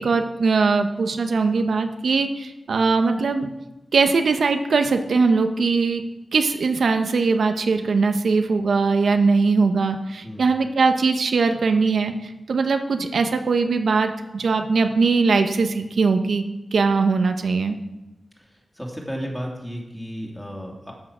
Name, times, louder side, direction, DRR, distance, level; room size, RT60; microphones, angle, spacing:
voice 1, 0.0-3.5 3.9-6.0 6.3-12.1 12.5-16.5 16.7-17.8, right 4 dB, 85° right, 6 dB, 0.8 m, -20 dB
voice 2, 18.4-20.9, equal, 5° left, -1 dB, 2.6 m, -34 dB
13.5 x 6.6 x 6.1 m, 0.99 s
wide cardioid pair, 100°, 0 cm